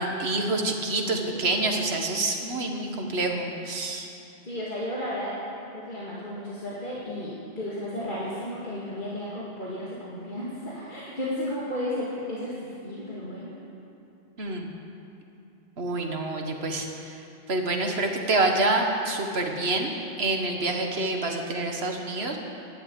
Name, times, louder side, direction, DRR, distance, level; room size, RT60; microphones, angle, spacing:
voice 1, 0.0-4.1 14.4-14.7 15.8-16.9 17.5-22.4, right 2 dB, 75° right, 2 dB, 1.7 m, -27 dB
voice 2, 1.0-1.8 4.4-5.3 5.7-13.5, left 1 dB, 50° left, -7 dB, 2.4 m, -34 dB
12.5 x 11.0 x 8.6 m, 2.7 s
omnidirectional pair, 1.1 m